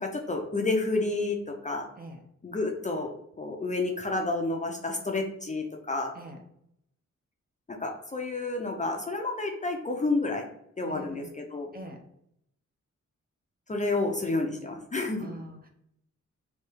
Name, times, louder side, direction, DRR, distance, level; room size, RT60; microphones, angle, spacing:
voice 1, 0.0-1.9 2.4-3.1 3.4-6.1 7.7-10.5 10.8-11.7 13.7-15.3, left 2 dB, 25° left, 2 dB, 0.5 m, -30 dB
voice 2, 10.8-11.3 11.7-12.0 15.2-15.7, right 1 dB, 30° right, 4 dB, 0.6 m, -43 dB
3.4 x 2.8 x 4.5 m, 0.73 s
wide cardioid pair, 140°, 29 cm